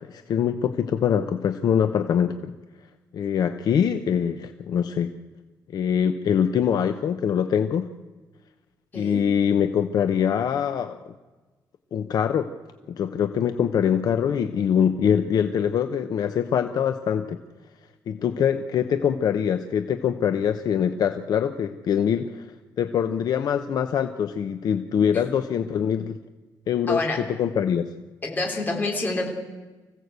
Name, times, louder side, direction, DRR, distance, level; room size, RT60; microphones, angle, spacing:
voice 1, 0.1-2.5 3.1-5.1 5.7-7.9 8.9-11.0 11.9-12.5 12.9-17.4 18.1-22.5 22.8-26.2 26.7-27.9, left 8 dB, 55° left, 8 dB, 0.9 m, -23 dB
voice 2, 8.9-9.2 26.9-27.2 28.2-29.3, left 2 dB, 25° left, 1 dB, 3.6 m, -27 dB
25.0 x 16.0 x 8.2 m, 1.3 s
wide cardioid pair, 180°, 8 cm